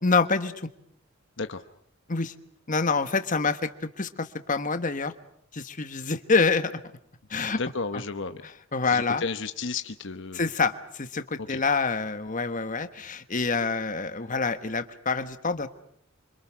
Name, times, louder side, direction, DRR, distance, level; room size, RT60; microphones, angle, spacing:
voice 1, 0.0-0.7 2.1-2.3 2.7-3.7 4.0-5.1 5.5-6.7 7.3-7.6 8.4-9.2 10.3-15.7, left 4 dB, 40° left, 10 dB, 1.3 m, -26 dB
voice 2, 7.6-8.4 8.9-10.4 11.5-11.6, left 4 dB, 60° left, 9 dB, 1.0 m, -33 dB
28.0 x 26.0 x 6.3 m, 0.68 s
head